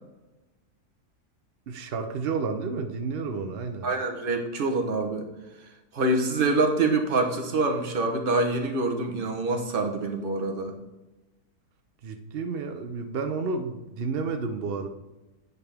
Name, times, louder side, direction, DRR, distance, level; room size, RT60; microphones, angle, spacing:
voice 1, 1.7-3.9 12.0-14.9, right 4 dB, 75° right, 6 dB, 0.5 m, -31 dB
voice 2, 3.8-5.3 5.9-10.7, right 2 dB, 40° right, 3 dB, 1.0 m, -25 dB
9.2 x 5.4 x 3.4 m, 1.1 s
omnidirectional pair, 1.7 m